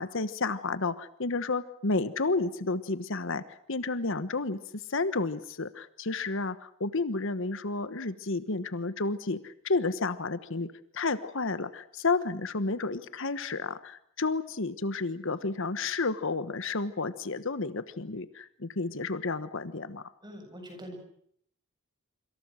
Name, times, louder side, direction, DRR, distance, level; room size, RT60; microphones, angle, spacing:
voice 1, 0.0-20.0, left 3 dB, 60° left, 13 dB, 1.2 m, -31 dB
voice 2, 20.2-21.0, equal, 20° right, 5 dB, 7.4 m, -43 dB
26.5 x 26.0 x 6.4 m, 0.67 s
head